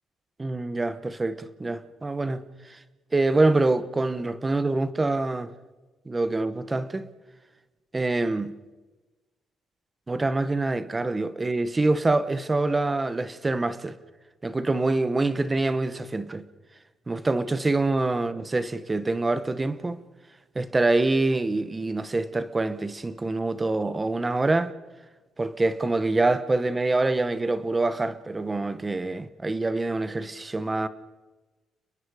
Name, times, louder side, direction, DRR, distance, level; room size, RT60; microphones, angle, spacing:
voice 1, 0.4-2.4 2.7-2.8 3.1-5.5 6.1-7.1 7.9-8.5 10.1-14.0 14.4-16.4 17.1-20.0 20.5-24.7 25.4-30.9, right 2 dB, 15° right, 0.9 m, -25 dB
29.5 x 21.5 x 4.8 m
cardioid pair, 175°, 0 cm